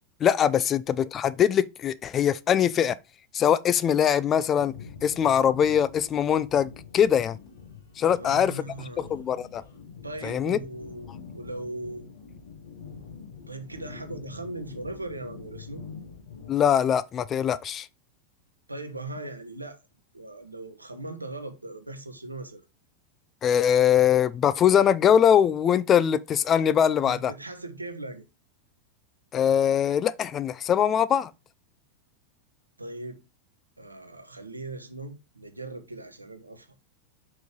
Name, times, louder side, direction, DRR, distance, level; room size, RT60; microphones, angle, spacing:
voice 1, 0.2-3.0 3.3-4.7 5.0-7.4 8.0-8.5 9.1-9.6 10.2-10.6 16.5-17.9 23.4-27.3 29.3-31.3, left 9 dB, 25° left, 0.4 m, -22 dB
sound 1, 4.6-16.5, left 5 dB, 65° left, 1.3 m, -45 dB
voice 2, 8.0-9.2 10.0-12.1 13.5-15.8 18.7-19.8 20.1-22.6 27.0-28.2 32.8-33.2 33.8-36.7, right 2 dB, 85° right, 1.0 m, -39 dB
5.3 x 4.6 x 4.6 m
figure-of-eight pair, 90°, 0 cm